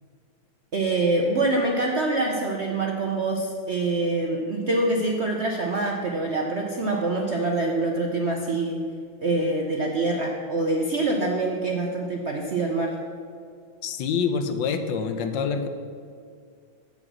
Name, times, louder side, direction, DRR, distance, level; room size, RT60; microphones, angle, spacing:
voice 1, 0.7-8.9 9.2-13.0, right 2 dB, 60° right, 1 dB, 0.7 m, -25 dB
voice 2, 13.8-15.7, left 6 dB, 75° left, 8 dB, 1.3 m, -26 dB
8.0 x 7.5 x 6.1 m, 2.2 s
omnidirectional pair, 2.1 m